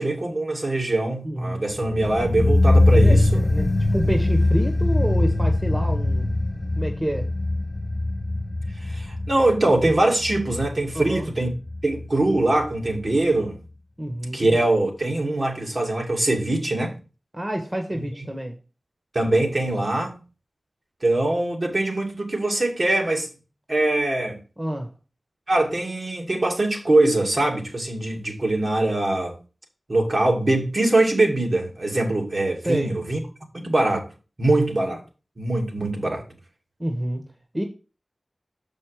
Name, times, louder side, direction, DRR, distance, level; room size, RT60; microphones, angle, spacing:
voice 1, 0.0-3.4 8.8-11.5 11.8-13.6 14.3-16.9 19.1-20.2 21.0-23.3 23.7-24.4 25.5-29.4 29.9-33.2 33.5-34.1 34.4-35.0 35.4-36.2, right 2 dB, 60° right, 2.4 m, -22 dB
voice 2, 1.2-1.7 2.9-6.4 6.8-7.3 10.9-11.3 14.0-14.5 17.3-18.6 24.6-24.9 32.6-33.0 36.8-37.2 37.5-37.6, right 1 dB, 30° right, 1.5 m, -28 dB
sound 1, 1.7-12.7 13.0-13.1, left 2 dB, 50° left, 1.3 m, -22 dB
6.9 x 5.4 x 5.0 m
wide cardioid pair, 45°, 0 cm